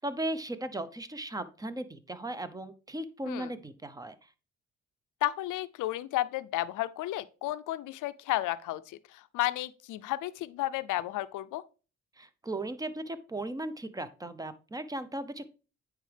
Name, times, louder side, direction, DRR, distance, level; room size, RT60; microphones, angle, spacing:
voice 1, 0.0-4.2 12.2-15.5, right 1 dB, 10° right, 0.7 m, -37 dB
voice 2, 5.2-11.6, left 15 dB, 85° left, 0.5 m, -33 dB
9.1 x 4.8 x 3.3 m
cardioid pair, 90°, 30 cm